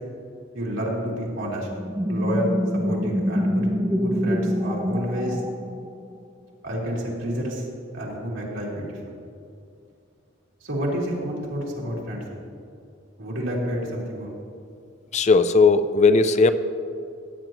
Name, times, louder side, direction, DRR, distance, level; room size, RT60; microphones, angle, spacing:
voice 1, 0.5-1.7 2.1-2.5 2.8-5.4 6.6-7.6 7.9-9.0 10.7-12.2 13.2-14.4, equal, 85° right, -4 dB, 2.9 m, -29 dB
sound 1, 1.7-6.2, equal, 15° right, 0.6 m, -25 dB
voice 2, 15.1-16.5, left 4 dB, 35° left, 11 dB, 0.4 m, -17 dB
16.5 x 9.3 x 3.0 m, 2.5 s
head